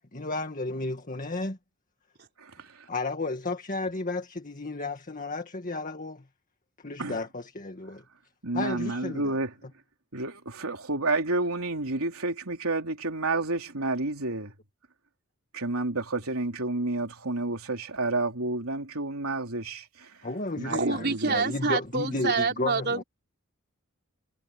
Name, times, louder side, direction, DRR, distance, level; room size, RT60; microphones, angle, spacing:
voice 1, 0.1-1.6 2.9-6.3 6.8-8.0 8.5-9.4 20.2-23.0, left 2 dB, 40° left, 1.9 m, -33 dB
voice 2, 2.4-2.9 7.0-7.3 8.4-9.6 10.1-14.5 15.5-20.2 20.6-21.4, right 2 dB, 80° right, 3.6 m, -30 dB
voice 3, 20.7-23.0, right 4 dB, 50° right, 4.7 m, -27 dB
head